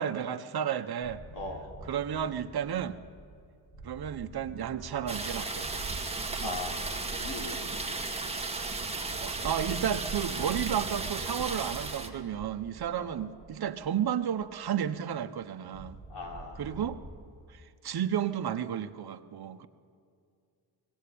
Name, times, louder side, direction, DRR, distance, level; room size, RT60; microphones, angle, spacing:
voice 1, 0.0-1.2 1.9-3.0 3.8-5.9 6.4-6.6 9.2-16.0 16.6-17.0 17.5-19.7, right 9 dB, 60° right, 8 dB, 1.0 m, -32 dB
sound 1, 1.0-15.1 15.4-15.5 15.7-17.2, right 1 dB, 40° left, 3.8 m, -48 dB
voice 2, 1.3-1.7 6.4-6.8 7.2-7.6 12.9-13.2 16.1-16.6, left 3 dB, 75° left, 0 dB, 3.9 m, -39 dB
sound 2, 5.1-12.1, right 3 dB, 15° right, 1.8 m, -35 dB
20.0 x 16.0 x 8.5 m, 2.3 s
wide cardioid pair, 115°, 42 cm